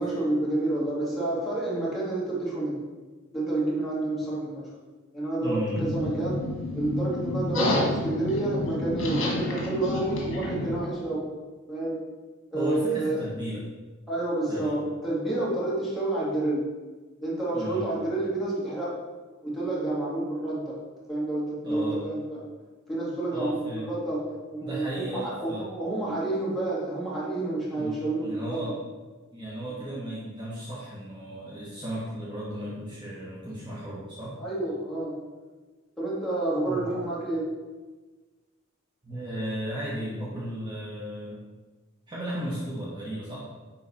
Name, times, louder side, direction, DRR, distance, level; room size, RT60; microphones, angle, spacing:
voice 1, 0.0-2.8 3.3-4.7 5.1-6.4 6.7-11.2 11.7-12.0 12.5-13.2 14.1-16.7 17.2-19.0 19.4-20.7 21.1-22.4 22.9-24.3 24.5-28.6 29.7-29.8 34.4-35.1 36.0-37.5, right 2 dB, ahead, -8 dB, 2.4 m, -29 dB
voice 2, 5.4-5.9 12.5-13.6 14.5-14.8 17.5-17.9 21.6-22.1 23.3-23.9 24.6-25.6 27.7-28.8 29.3-34.3 36.6-36.9 39.0-41.4 42.1-43.5, right 1 dB, 25° right, -8 dB, 1.4 m, -35 dB
sound 1, 5.8-10.8, left 2 dB, 80° left, 1.7 m, -29 dB
9.8 x 3.8 x 4.2 m, 1.3 s
head